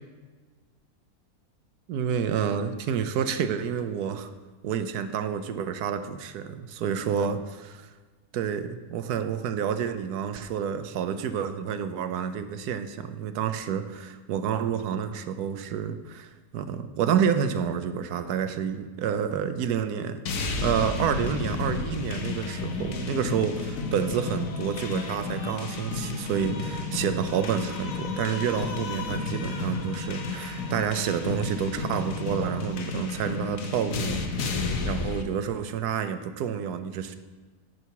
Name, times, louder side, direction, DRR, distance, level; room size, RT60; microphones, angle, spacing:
voice 1, 1.9-4.3 4.6-7.9 8.3-20.2 20.6-37.2, right 8 dB, 75° right, 10 dB, 1.2 m, -29 dB
sound 1, 20.3-35.2, left 4 dB, 60° left, 1.2 m, -32 dB
10.5 x 7.0 x 4.6 m, 1.4 s
omnidirectional pair, 1.7 m